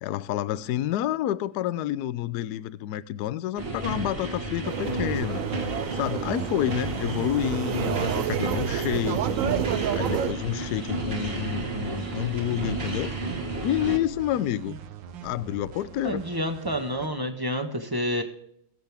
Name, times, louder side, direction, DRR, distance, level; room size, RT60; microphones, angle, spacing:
voice 1, 0.0-5.4 5.9-9.4 9.9-13.1 13.6-14.8 15.2-16.2, left 12 dB, 70° left, 1.0 m, -29 dB
sound 1, 3.6-14.0, right 2 dB, 35° right, 1.8 m, -32 dB
sound 2, 4.6-10.3, right 10 dB, 65° right, 0.8 m, -29 dB
sound 3, 6.1-17.1, right 7 dB, 85° right, 1.7 m, -43 dB
voice 2, 16.0-18.2, equal, 15° right, 1.2 m, -29 dB
22.0 x 7.9 x 3.5 m
omnidirectional pair, 2.0 m